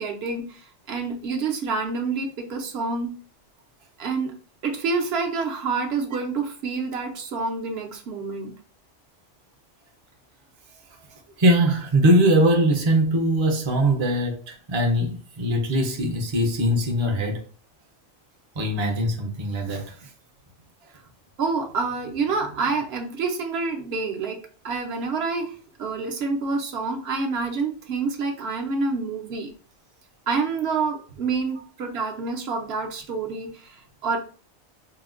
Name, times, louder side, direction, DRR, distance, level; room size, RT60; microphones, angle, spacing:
voice 1, 0.0-3.1 4.0-4.3 4.6-8.5 21.4-24.4 24.6-29.5 30.3-34.2, right 4 dB, 65° right, 0.8 m, -27 dB
voice 2, 11.4-17.4 18.6-20.1, right 1 dB, 35° right, 0.5 m, -21 dB
3.9 x 2.1 x 2.4 m
omnidirectional pair, 1.2 m